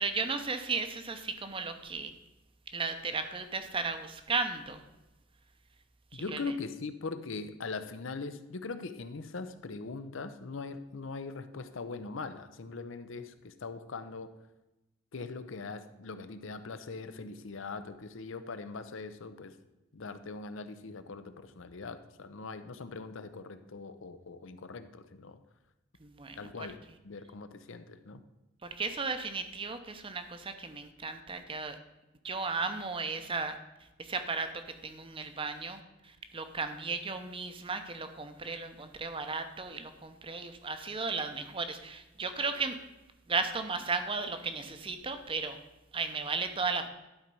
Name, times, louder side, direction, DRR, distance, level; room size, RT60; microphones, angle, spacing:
voice 1, 0.0-2.1 2.7-4.8 6.1-6.4 26.0-26.4 28.6-31.8 32.2-33.6 34.0-34.5 34.8-42.8 43.3-45.6 45.9-46.9, right 4 dB, 25° right, 8 dB, 0.7 m, -35 dB
voice 2, 6.1-14.3 15.1-19.5 19.9-25.4 26.4-28.2, left 4 dB, 65° left, 11 dB, 0.6 m, -41 dB
11.5 x 4.5 x 5.3 m, 0.99 s
head